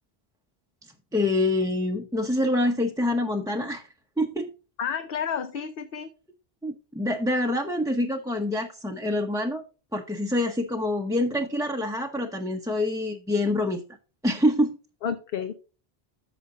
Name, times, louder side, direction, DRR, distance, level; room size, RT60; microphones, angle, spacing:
voice 1, 1.1-3.8 4.2-4.5 6.6-9.6 9.9-13.8 14.2-14.8, left 1 dB, 5° right, 1 dB, 0.6 m, -26 dB
voice 2, 4.8-6.1 15.0-15.5, left 7 dB, 65° left, 9 dB, 0.9 m, -30 dB
14.0 x 5.1 x 2.7 m, 0.33 s
omnidirectional pair, 1.0 m